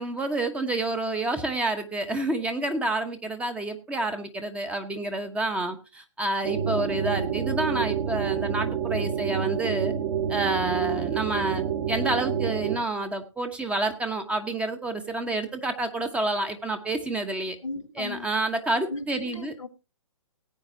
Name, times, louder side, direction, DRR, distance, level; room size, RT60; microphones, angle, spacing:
voice 1, 0.0-9.9 10.3-17.6 18.0-19.5, right 2 dB, 5° right, 1.0 m, -29 dB
sound 1, 6.4-12.8, right 8 dB, 45° right, 2.1 m, -28 dB
voice 2, 17.6-18.3 18.9-19.7, left 2 dB, 75° left, 1.5 m, -36 dB
18.0 x 8.8 x 2.8 m
figure-of-eight pair, 130°, 17 cm